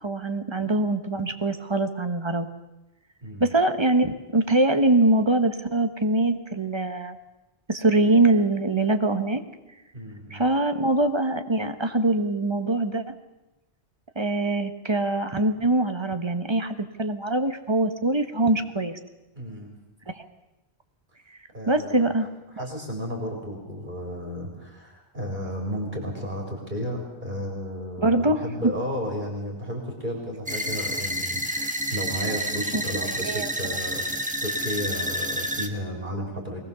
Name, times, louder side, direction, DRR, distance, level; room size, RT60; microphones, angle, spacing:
voice 1, 0.0-2.5 3.4-7.2 7.7-9.4 10.3-13.0 14.1-19.0 20.1-20.2 21.7-22.3 22.6-22.7 28.0-28.7 32.7-32.8 33.2-33.5, right 2 dB, 25° right, 8 dB, 1.3 m, -23 dB
voice 2, 3.2-3.6 9.9-10.4 19.3-19.7 21.5-22.1 22.5-36.6, equal, 45° right, 0 dB, 4.0 m, -33 dB
sound 1, 30.5-35.7, equal, 5° right, 1.4 m, -29 dB
22.0 x 19.0 x 7.0 m, 0.99 s
omnidirectional pair, 1.1 m